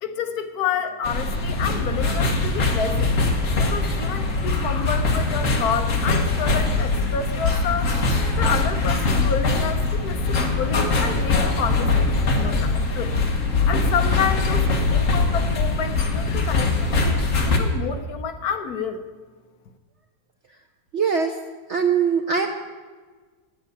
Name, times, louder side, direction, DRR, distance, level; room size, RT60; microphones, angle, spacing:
voice 1, 0.0-3.1 3.6-8.0 8.4-13.2 13.7-19.0, left 6 dB, 65° left, 8 dB, 1.2 m, -29 dB
sound 1, 1.0-17.6, left 3 dB, 50° left, 1.6 m, -22 dB
voice 2, 20.9-21.4 21.7-22.5, right 6 dB, 60° right, 5 dB, 0.7 m, -21 dB
9.8 x 8.1 x 8.2 m, 1.4 s
omnidirectional pair, 1.9 m